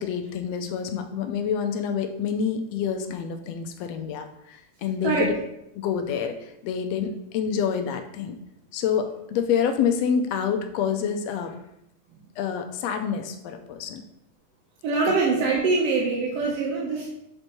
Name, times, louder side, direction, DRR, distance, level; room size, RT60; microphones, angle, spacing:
voice 1, 0.0-5.3 5.7-8.4 8.7-11.6 12.4-14.0, left 7 dB, 75° left, 6 dB, 1.6 m, -27 dB
voice 2, 14.8-17.1, right 4 dB, 65° right, -3 dB, 1.8 m, -23 dB
6.7 x 4.3 x 4.4 m, 0.80 s
omnidirectional pair, 3.3 m